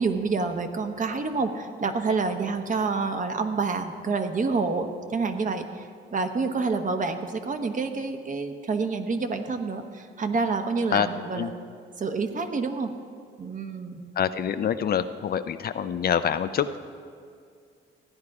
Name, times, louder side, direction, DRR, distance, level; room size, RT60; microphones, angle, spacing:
voice 1, 0.0-11.5 12.0-12.9 13.4-14.0, right 4 dB, 40° right, 6 dB, 1.1 m, -28 dB
voice 2, 14.2-16.8, left 8 dB, 50° left, 11 dB, 0.6 m, -26 dB
15.5 x 10.5 x 4.8 m, 2.2 s
cardioid pair, 90°, 20 cm